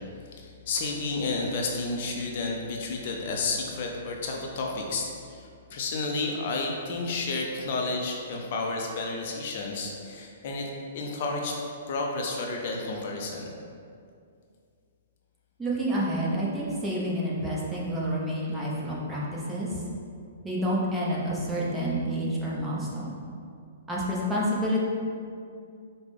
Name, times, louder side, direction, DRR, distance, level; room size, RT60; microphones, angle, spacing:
voice 1, 0.3-11.6 11.9-13.5, left 3 dB, 55° left, 0 dB, 0.5 m, -31 dB
voice 2, 15.6-19.8 20.4-23.1 23.9-24.8, equal, 10° right, -6 dB, 0.8 m, -29 dB
4.9 x 2.2 x 3.3 m, 2.3 s
hypercardioid pair, 120°, 0 cm